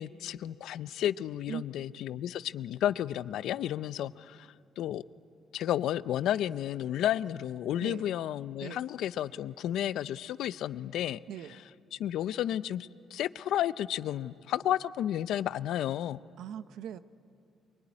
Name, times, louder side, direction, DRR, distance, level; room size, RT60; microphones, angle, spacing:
voice 1, 0.0-4.5 4.8-5.0 5.5-11.2 11.9-16.2, left 11 dB, 70° left, 16 dB, 0.5 m, -32 dB
voice 2, 16.4-17.0, right 9 dB, 70° right, 13 dB, 0.8 m, -40 dB
23.5 x 23.5 x 9.7 m, 2.5 s
cardioid pair, 140°, 0 cm